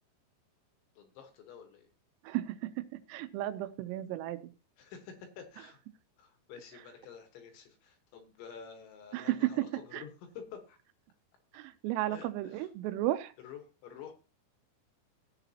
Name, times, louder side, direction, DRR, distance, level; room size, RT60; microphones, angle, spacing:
voice 1, 1.0-1.9 4.8-5.8 6.2-10.8 12.1-12.7 13.4-14.1, left 7 dB, 70° left, 6 dB, 3.4 m, -49 dB
voice 2, 2.2-4.4 9.1-9.5 9.9-10.0 11.5-13.3, right 15 dB, 85° right, 11 dB, 3.3 m, -34 dB
17.0 x 8.1 x 2.8 m, 0.33 s
omnidirectional pair, 6.0 m